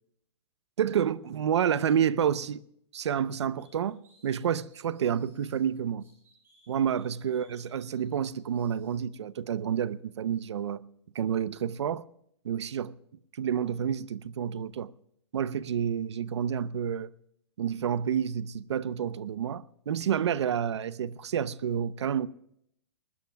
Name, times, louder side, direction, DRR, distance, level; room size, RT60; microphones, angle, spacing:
voice 1, 0.8-2.6 2.9-6.1 6.7-10.8 11.1-12.0 12.4-13.0 13.4-14.9 15.3-17.1 17.6-22.3, right 8 dB, 75° right, 0.8 m, -29 dB
sound 1, 3.6-5.6 6.0-9.0, right 2 dB, 15° right, 5.0 m, -64 dB
20.0 x 20.0 x 2.3 m
hypercardioid pair, 175°, 15 cm